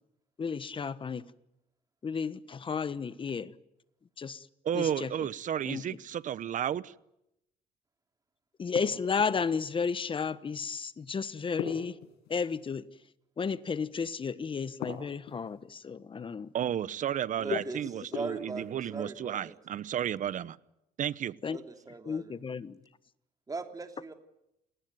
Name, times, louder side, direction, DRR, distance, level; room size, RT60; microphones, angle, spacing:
voice 1, 0.4-1.3 2.0-3.5 4.2-4.4 4.7-5.1 5.7-5.8 8.6-11.9 12.3-12.8 13.4-16.5 17.5-17.6 21.4-21.6 22.1-22.8, left 5 dB, 30° left, 15 dB, 1.2 m, -33 dB
voice 2, 4.6-6.9 16.5-20.6 21.0-21.3, right 10 dB, 50° right, 18 dB, 0.9 m, -32 dB
sound 1, 8.7-9.5 11.6-12.6 14.8-15.6 18.1-18.8, left 6 dB, 80° left, 5.9 m, -40 dB
voice 3, 17.4-17.8 18.1-19.6 21.5-22.3 23.5-24.1, right 4 dB, 20° right, 5 dB, 3.1 m, -40 dB
29.0 x 19.5 x 9.3 m, 0.86 s
cardioid pair, 110°, 17 cm